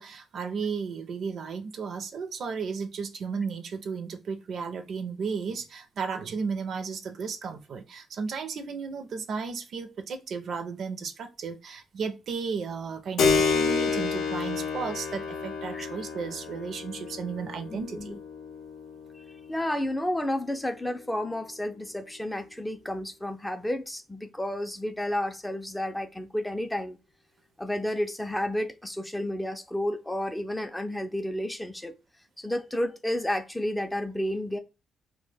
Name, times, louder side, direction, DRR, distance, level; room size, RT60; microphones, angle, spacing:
voice 1, 0.0-18.2, right 5 dB, 60° right, 0.4 m, -34 dB
Keyboard (musical), 13.2-21.4, left 5 dB, 75° left, 0.5 m, -30 dB
voice 2, 17.7-18.2 19.1-19.2 19.5-27.0 27.6-31.9 32.4-34.6, left 1 dB, 10° left, 0.4 m, -31 dB
2.1 x 2.1 x 3.2 m
cardioid pair, 90°, 0 cm